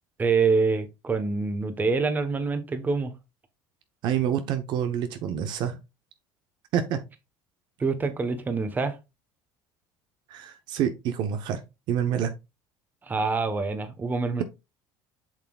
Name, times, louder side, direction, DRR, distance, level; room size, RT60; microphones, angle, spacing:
voice 1, 0.2-3.1 7.8-9.0 13.0-14.4, right 4 dB, 20° right, 1.1 m, -26 dB
voice 2, 4.0-5.8 6.7-7.0 10.3-11.6 11.9-12.3, right 9 dB, 60° right, 0.9 m, -27 dB
7.4 x 5.9 x 2.4 m
supercardioid pair, 115°, 9 cm